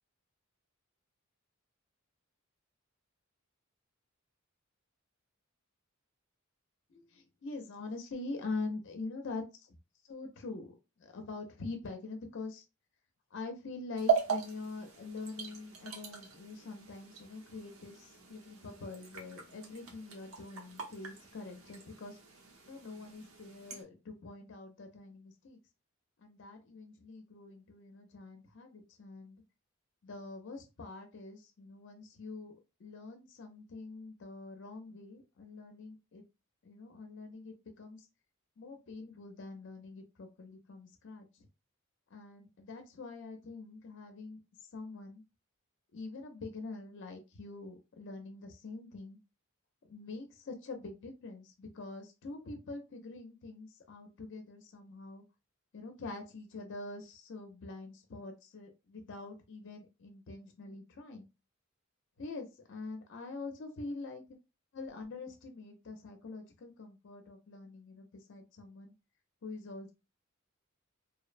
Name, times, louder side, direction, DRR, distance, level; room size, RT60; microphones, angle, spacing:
voice 1, 6.9-9.8 10.1-12.6 13.3-22.2 22.7-25.6 26.2-29.4 30.0-32.5 32.8-36.2 36.6-38.1 38.6-41.5 42.1-45.2 45.9-49.2 49.9-55.2 55.7-61.3 62.2-64.2 64.7-68.9 69.4-69.9, left 3 dB, 60° left, 5 dB, 0.5 m, -45 dB
sound 1, 14.0-23.8, right 7 dB, 80° right, 0.8 m, -39 dB
2.7 x 2.0 x 2.4 m, 0.27 s
head